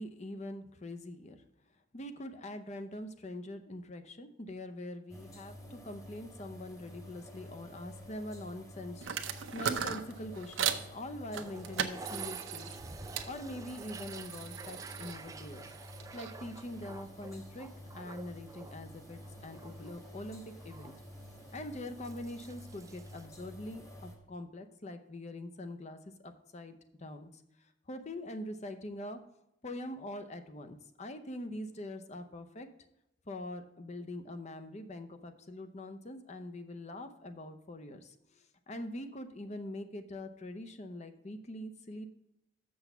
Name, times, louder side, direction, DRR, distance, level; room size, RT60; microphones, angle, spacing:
voice 1, 0.0-1.4 1.9-12.7 13.3-15.6 16.1-17.7 17.9-20.9 21.5-27.4 27.9-29.2 29.6-32.7 33.3-42.1, left 1 dB, 35° left, 8 dB, 0.7 m, -43 dB
sound 1, 5.1-24.2, equal, 20° left, 1.6 m, -50 dB
sound 2, 9.0-10.9 11.3-13.3 13.7-16.3, right 7 dB, 90° right, 0.7 m, -38 dB
Toilet flush, 11.3-23.3, right 3 dB, 15° right, 0.3 m, -51 dB
6.8 x 6.3 x 5.9 m, 0.86 s
head